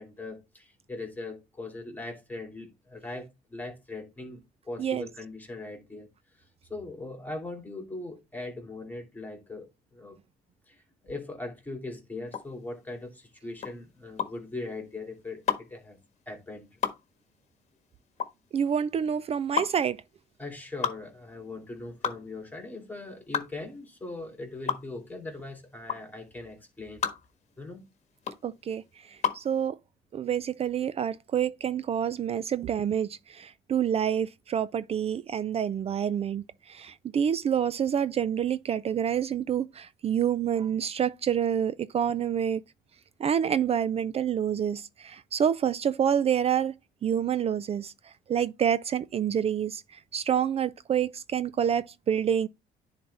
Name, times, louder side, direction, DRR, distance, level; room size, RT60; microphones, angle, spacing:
voice 1, 0.0-10.2 10.7-16.0 16.3-16.7 20.4-27.1 27.6-27.8, left 2 dB, 10° left, 2.6 m, -40 dB
sound 1, 12.3-29.5, left 8 dB, 40° left, 1.4 m, -34 dB
voice 2, 18.5-20.0 28.4-28.8 29.1-29.8 30.1-42.6 43.2-46.7 47.0-47.9 48.3-49.8 50.1-52.5, right 8 dB, 35° right, 0.4 m, -27 dB
10.0 x 4.1 x 3.3 m
cardioid pair, 110°, 17 cm